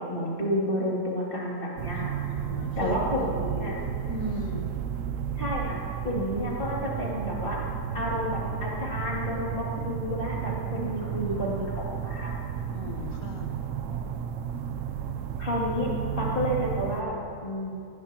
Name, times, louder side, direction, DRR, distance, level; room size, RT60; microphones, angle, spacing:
voice 1, 0.0-2.2 2.8-3.8 5.4-7.6 7.9-12.4 15.4-15.9 16.2-17.7, equal, 35° left, -5 dB, 2.9 m, -30 dB
sound 1, 1.8-17.0, right 8 dB, 65° right, 0.9 m, -33 dB
voice 2, 1.9-3.0 3.2-3.7 4.1-4.7 10.8-10.9 11.3-11.5 12.7-13.6, left 2 dB, 65° left, 1 dB, 1.5 m, -38 dB
19.5 x 16.5 x 3.0 m, 2.5 s
omnidirectional pair, 1.5 m